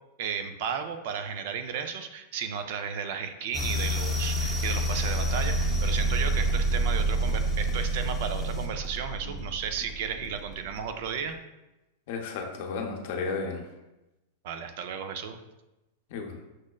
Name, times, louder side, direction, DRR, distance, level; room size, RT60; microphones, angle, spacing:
voice 1, 0.2-11.4 14.4-15.4, right 7 dB, 65° right, 8 dB, 0.4 m, -34 dB
sound 1, 3.5-11.0, right 1 dB, ahead, 0.7 m, -28 dB
voice 2, 12.1-13.7 16.1-16.4, left 4 dB, 65° left, 2 dB, 0.6 m, -33 dB
6.1 x 2.1 x 2.2 m, 0.98 s
hypercardioid pair, 125°, 0 cm